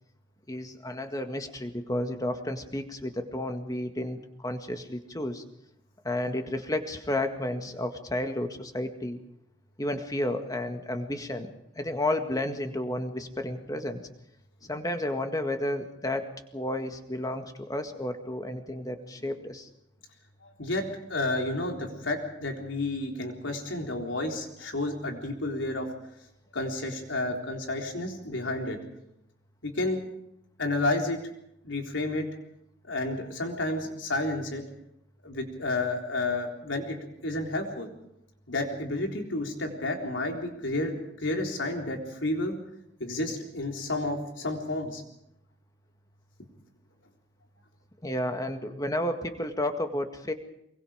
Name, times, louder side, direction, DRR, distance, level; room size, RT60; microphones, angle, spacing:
voice 1, 0.5-5.4 6.0-9.2 9.8-14.0 14.6-19.7 48.0-50.3, left 1 dB, 20° left, 6 dB, 1.9 m, -32 dB
voice 2, 20.4-25.9 26.5-28.8 29.6-30.0 30.6-31.2 31.6-32.3 32.8-34.6 35.2-37.0 37.2-37.9 38.5-42.6 43.0-45.0, left 2 dB, 90° left, 2 dB, 3.9 m, -31 dB
24.0 x 23.0 x 5.1 m, 0.77 s
head